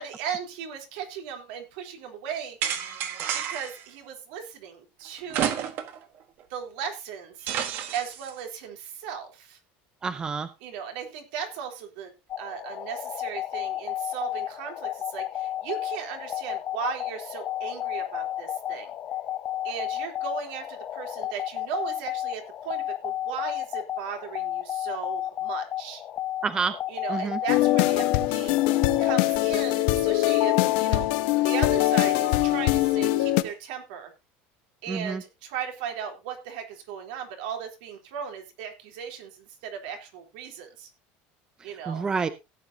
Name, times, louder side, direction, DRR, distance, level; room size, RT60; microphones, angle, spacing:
voice 1, 0.0-2.6 3.3-5.7 6.5-7.5 7.9-9.6 10.6-12.1 12.4-18.9 19.6-26.0 26.9-31.1 31.4-34.1 34.8-40.9 41.6-42.0, right 7 dB, 75° right, 4 dB, 3.5 m, -36 dB
sound 1, 2.6-3.8 5.3-6.0 6.4-6.5 7.5-8.3, right 9 dB, 45° right, 1.4 m, -30 dB
voice 2, 10.0-10.5 26.4-26.7 27.1-27.4 34.9-35.2 41.9-42.3, right 5 dB, 15° right, 12 dB, 0.6 m, -28 dB
sound 2, 12.3-29.1, left 12 dB, 30° left, 0.8 m, -33 dB
sound 3, 27.5-33.4, left 16 dB, 65° left, 1.0 m, -22 dB
16.5 x 9.1 x 2.8 m, 0.25 s
cardioid pair, 170°, 5 cm